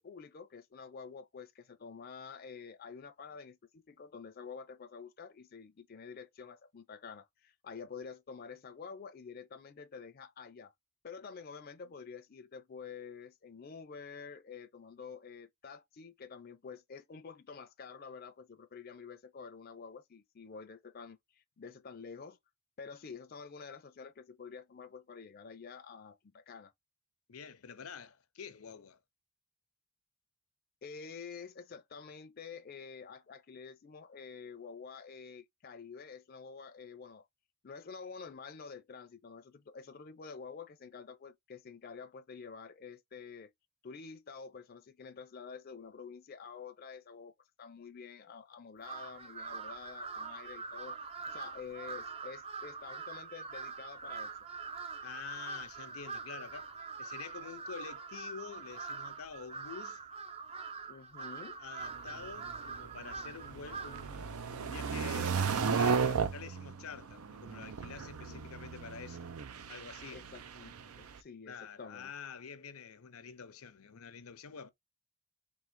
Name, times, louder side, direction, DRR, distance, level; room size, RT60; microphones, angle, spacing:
voice 1, 0.0-10.7 11.0-22.4 22.8-26.7 30.8-37.3 37.6-43.5 43.8-51.0 51.3-54.3 60.9-61.6 68.3-68.5 70.1-72.1, left 5 dB, 45° left, 0.4 m, -48 dB
voice 2, 27.3-29.0 55.0-60.0 61.2-61.3 61.6-69.3 69.7-70.2 71.5-74.7, left 6 dB, 85° left, 0.6 m, -47 dB
Crow, 48.8-64.2, right 4 dB, 25° right, 0.4 m, -44 dB
sound 1, 61.9-71.2, right 5 dB, 90° right, 0.5 m, -35 dB
3.6 x 2.4 x 4.3 m
head